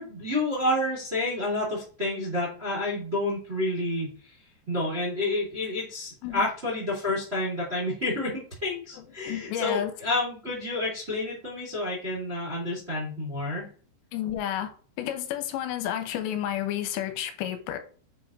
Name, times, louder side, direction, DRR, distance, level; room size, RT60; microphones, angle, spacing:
voice 1, 0.0-4.3 4.7-13.7, left 2 dB, 30° right, 1.1 m, -29 dB
voice 2, 9.0-9.9 14.1-14.7 15.0-17.8, left 11 dB, 85° left, 2.9 m, -31 dB
7.4 x 5.2 x 2.5 m
omnidirectional pair, 5.2 m